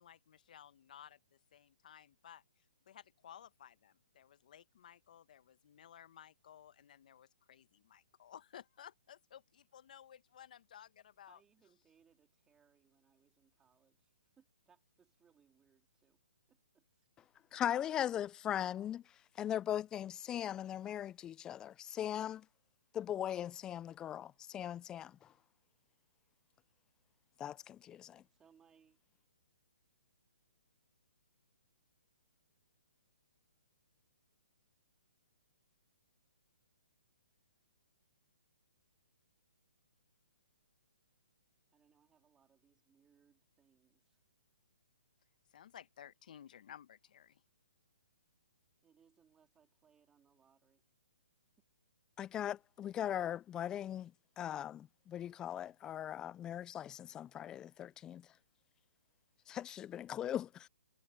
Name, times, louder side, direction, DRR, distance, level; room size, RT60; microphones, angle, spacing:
voice 1, 0.0-11.4 45.5-47.4, left 10 dB, 55° left, 1.2 m, -57 dB
voice 2, 11.3-16.2 16.5-17.1 28.3-29.0 41.7-44.2 48.8-50.8, right 7 dB, 10° right, 3.7 m, -71 dB
voice 3, 17.5-19.0 19.4-22.4 22.9-25.2 27.4-28.2 52.2-54.1 54.4-58.3 59.5-60.7, left 10 dB, 15° left, 0.3 m, -39 dB
hypercardioid pair, 145°, 5 cm